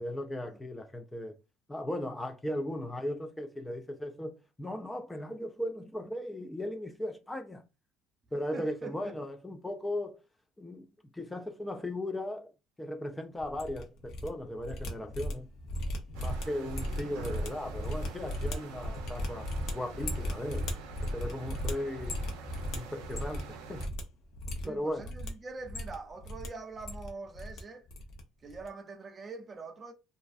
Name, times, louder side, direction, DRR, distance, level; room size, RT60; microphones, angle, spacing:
voice 1, 0.0-1.4 1.7-7.6 8.3-10.2 10.6-12.5 12.8-15.5 16.2-20.7 21.1-22.2 22.7-23.9 24.7-25.0, left 1 dB, 10° left, 0.4 m, -37 dB
voice 2, 8.5-9.2 15.1-15.2 21.4-21.6 24.6-27.9 28.4-29.9, right 3 dB, 35° right, 0.6 m, -44 dB
sound 1, 13.4-14.3 14.5-23.5 23.7-24.0 24.3-25.3 25.6-26.5 26.7-27.6 27.9-28.2 28.5-28.7, equal, 65° left, 0.7 m, -36 dB
sound 2, 16.1-23.9, right 4 dB, 85° right, 0.5 m, -46 dB
2.5 x 2.3 x 2.3 m
supercardioid pair, 90°, 0 cm